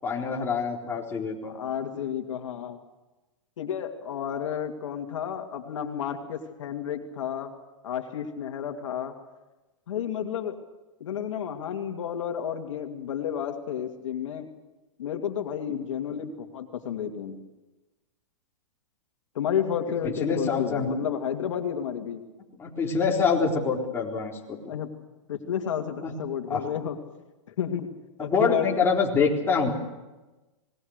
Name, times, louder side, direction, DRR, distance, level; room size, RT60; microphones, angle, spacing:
voice 1, 0.0-1.5 20.0-20.9 22.6-24.7 26.0-26.1 26.5-26.6 28.2-29.7, left 5 dB, 15° left, -2 dB, 4.2 m, -26 dB
voice 2, 1.4-2.8 3.6-7.5 7.8-9.1 9.9-10.6 11.0-14.5 15.0-17.4 19.3-22.2 24.7-24.9 25.3-27.0 27.6-27.9 28.2-28.7, left 8 dB, 75° left, 4 dB, 2.5 m, -31 dB
26.0 x 20.0 x 6.7 m, 1.1 s
hypercardioid pair, 140°, 16 cm